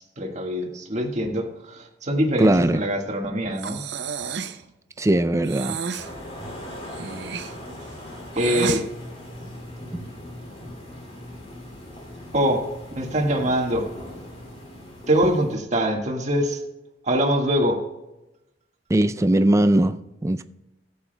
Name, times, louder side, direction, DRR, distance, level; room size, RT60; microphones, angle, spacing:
voice 1, 0.0-3.8 8.3-8.8 12.3-12.7 12.9-13.8 15.1-16.6 17.0-17.8, equal, 40° right, 1.6 m, -23 dB
voice 2, 2.4-2.8 5.0-5.8 18.9-20.4, right 1 dB, 15° right, 0.4 m, -20 dB
Breathing, 3.6-4.6 5.4-6.1 6.9-8.8, right 6 dB, 65° right, 0.6 m, -31 dB
sound 1, 6.0-15.6, left 1 dB, 35° left, 2.6 m, -39 dB
14.0 x 8.7 x 2.2 m
head